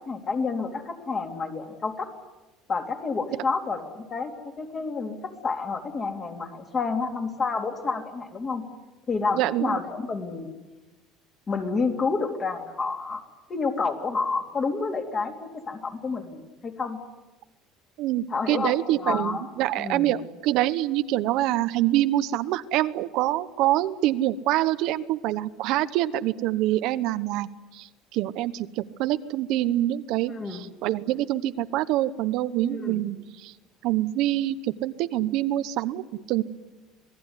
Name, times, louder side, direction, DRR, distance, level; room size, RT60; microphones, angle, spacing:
voice 1, 0.1-2.1 2.7-4.3 4.6-8.6 9.1-10.5 11.5-13.2 13.5-17.0 18.3-19.5 19.8-20.1 30.3-30.6 32.7-33.0, left 4 dB, 25° left, 4 dB, 3.3 m, -29 dB
voice 2, 9.3-9.8 18.0-33.5 33.8-36.4, right 14 dB, 65° right, 12 dB, 1.0 m, -26 dB
27.0 x 18.5 x 9.9 m, 1.1 s
cardioid pair, 140°, 0 cm